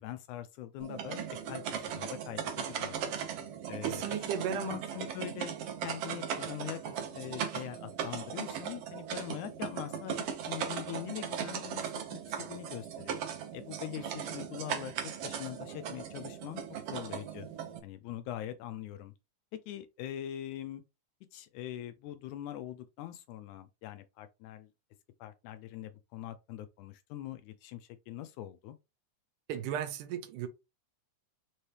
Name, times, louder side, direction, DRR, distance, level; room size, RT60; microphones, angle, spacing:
voice 1, 0.0-3.1 3.7-5.6 5.8-6.8 7.1-13.2 13.5-14.9 15.2-17.5 17.8-19.1 19.5-20.8 21.3-24.7 25.2-28.8, left 12 dB, 80° left, 1.9 m, -43 dB
sound 1, 0.8-17.8, right 8 dB, 70° right, 1.5 m, -38 dB
voice 2, 3.8-4.8 29.5-30.5, right 9 dB, 85° right, 2.3 m, -35 dB
5.3 x 3.2 x 2.8 m
omnidirectional pair, 3.6 m